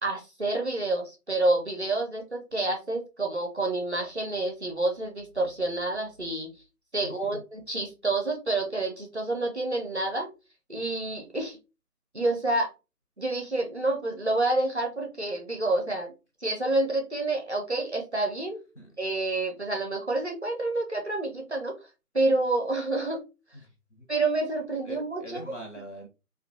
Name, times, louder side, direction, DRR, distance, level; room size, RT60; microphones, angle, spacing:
voice 1, 0.0-6.5 6.9-10.3 10.7-11.6 12.1-12.7 13.2-16.1 16.4-18.6 19.0-21.7 22.1-23.2 24.1-25.4, right 2 dB, 50° right, 2 dB, 0.4 m, -28 dB
voice 2, 7.0-7.4 18.7-19.0 23.5-24.1 24.8-26.1, equal, 50° left, 3 dB, 0.8 m, -43 dB
2.2 x 2.1 x 2.6 m, 0.29 s
figure-of-eight pair, 170°, 47 cm